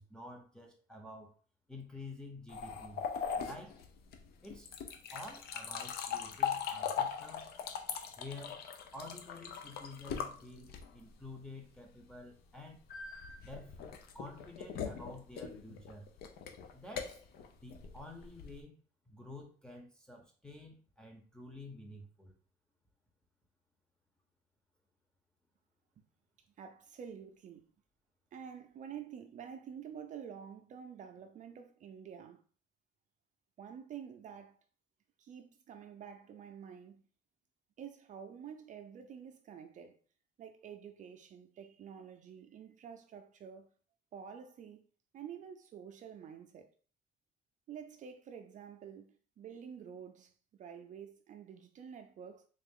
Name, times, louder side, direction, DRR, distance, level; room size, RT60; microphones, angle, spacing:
voice 1, 0.0-1.3 1.7-3.0 3.4-3.8 4.4-4.7 5.1-7.5 8.2-8.7 8.9-12.8 13.4-16.1 16.7-17.2 17.6-18.8 19.1-22.3, left 2 dB, 5° left, 0.8 m, -50 dB
sound 1, 2.5-11.1 12.9-18.6, left 7 dB, 70° left, 0.7 m, -40 dB
voice 2, 26.6-27.7 28.3-32.4 33.6-34.6 35.2-37.0 37.8-40.0 40.4-43.7 44.1-44.8 45.1-46.7 47.7-50.3 50.6-52.5, right 8 dB, 50° right, 0.5 m, -49 dB
3.8 x 2.4 x 3.6 m
cardioid pair, 110°, 17 cm